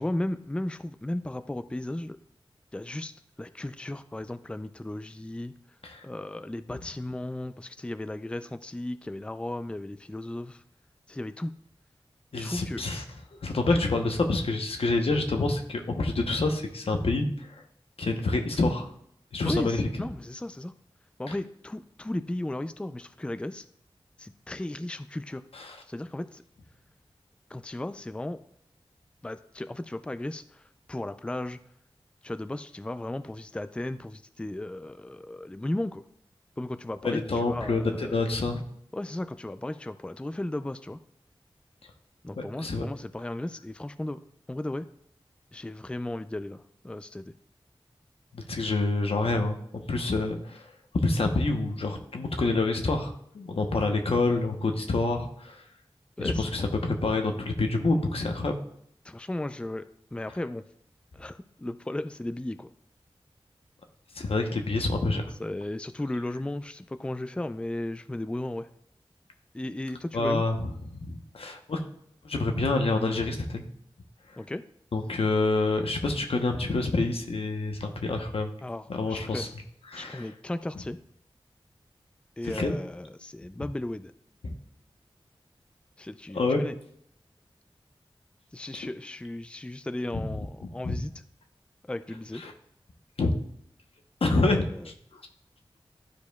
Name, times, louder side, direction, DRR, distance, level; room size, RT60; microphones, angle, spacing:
voice 1, 0.0-2.2 2.7-5.5 6.0-10.6 11.1-11.5 12.3-12.8 13.7-13.8 19.5-20.7 21.2-23.7 24.2-25.4 25.9-26.4 27.5-28.4 29.2-31.6 32.2-36.0 36.6-38.4 38.9-41.0 42.2-44.2 44.5-44.9 45.5-47.3 56.2-56.5 59.0-60.6 61.1-62.7 65.4-68.7 69.5-70.4 74.4-74.6 78.6-79.5 80.0-81.0 82.4-84.1 86.0-86.8 88.5-91.1 91.8-92.4 94.3-94.9, left 1 dB, 10° left, 12 dB, 0.4 m, -35 dB
voice 2, 12.3-13.0 13.4-17.6 18.0-18.9 19.3-19.9 21.3-21.4 25.5-25.8 37.0-38.6 42.4-42.8 48.3-49.6 49.9-50.7 51.0-55.6 56.2-58.6 64.1-65.2 70.1-70.6 70.9-71.8 72.2-73.6 74.9-78.5 78.9-79.5 79.9-80.3 82.4-82.7 84.4-84.5 86.3-86.6 90.8-91.0 92.4-92.5 93.2-93.4 94.2-94.6 95.1-95.2, left 2 dB, 80° left, 4 dB, 0.9 m, -27 dB
12.0 x 4.8 x 2.3 m, 0.70 s
wide cardioid pair, 50°, 10 cm